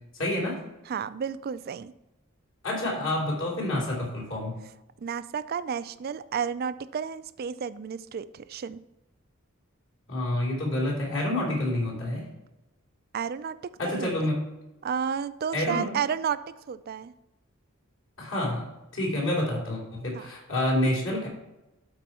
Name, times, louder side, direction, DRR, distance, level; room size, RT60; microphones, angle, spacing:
voice 1, 0.1-0.6 2.6-4.5 10.1-12.2 13.8-14.4 15.5-15.9 18.2-21.3, left 1 dB, 65° left, -2 dB, 3.2 m, -28 dB
voice 2, 0.9-1.9 5.0-8.8 13.1-14.1 14.8-16.4 16.7-17.1 20.1-20.3, right 7 dB, 45° right, 14 dB, 0.3 m, -32 dB
12.0 x 4.5 x 4.2 m, 0.95 s
head